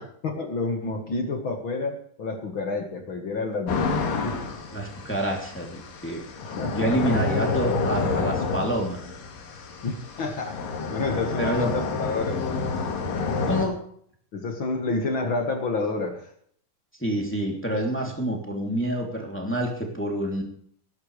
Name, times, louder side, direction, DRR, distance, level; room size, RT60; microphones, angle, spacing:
voice 1, 0.2-3.9 4.2-4.4 6.6-7.2 9.8-10.6 10.9-12.4 14.3-16.3, left 3 dB, 45° left, 4 dB, 1.9 m, -29 dB
sound 1, 3.7-13.7, left 4 dB, 90° left, 3.9 m, -29 dB
voice 2, 4.7-6.2 6.7-9.0 11.4-11.7 13.4-13.8 17.0-20.4, right 1 dB, 5° left, 0 dB, 2.4 m, -27 dB
20.0 x 11.5 x 3.3 m, 0.63 s
omnidirectional pair, 3.8 m